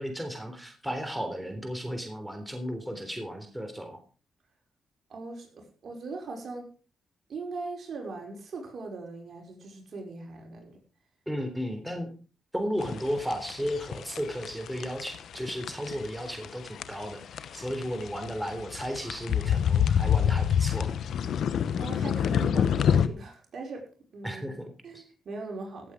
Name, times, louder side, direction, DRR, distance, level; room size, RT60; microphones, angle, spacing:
voice 1, 0.0-4.0 11.3-12.1 12.5-20.9 24.2-25.0, equal, 5° right, 5 dB, 3.6 m, -34 dB
voice 2, 5.1-6.7 7.3-10.8 21.7-23.9 24.1-24.6 24.8-25.9, right 3 dB, 60° right, 1 dB, 5.2 m, -40 dB
sound 1, 12.8-23.1, left 8 dB, 75° left, 1.0 m, -26 dB
16.0 x 8.1 x 5.1 m, 0.38 s
cardioid pair, 70°, 0 cm